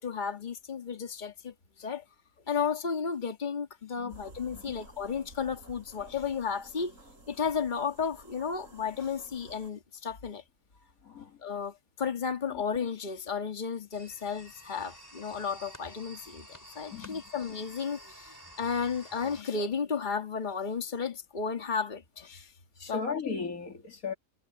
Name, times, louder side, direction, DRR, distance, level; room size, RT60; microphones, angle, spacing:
voice 1, 0.0-2.0 2.5-7.0 7.3-10.4 11.4-22.5 22.9-23.0, left 6 dB, 35° left, 1.9 m, -33 dB
sound 1, 4.1-9.7, right 2 dB, 65° right, 6.1 m, -53 dB
voice 2, 11.0-11.4 12.5-12.6 16.9-17.2 22.8-24.1, left 5 dB, 75° left, 2.6 m, -36 dB
sound 2, 13.9-19.4, equal, 10° left, 4.3 m, -50 dB
omnidirectional pair, 1.5 m